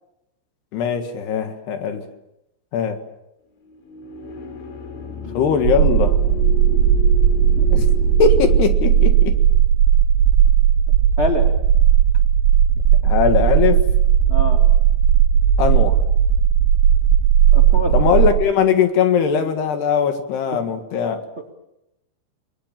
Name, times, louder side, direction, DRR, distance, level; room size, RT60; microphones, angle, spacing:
voice 1, 0.7-2.1 2.7-3.0 5.3-6.2 7.7-7.9 8.2-9.4 13.0-13.8 15.6-16.0 17.9-21.2, left 7 dB, 70° left, 8 dB, 3.7 m, -20 dB
sound 1, 3.6-8.6, left 7 dB, 85° left, 5.8 m, -33 dB
sound 2, 5.6-18.3, right 9 dB, 75° right, 3.4 m, -15 dB
voice 2, 11.2-11.5 14.3-14.6 17.5-18.1, left 1 dB, 25° right, 3 dB, 1.4 m, -25 dB
30.0 x 21.5 x 7.4 m, 0.88 s
omnidirectional pair, 5.2 m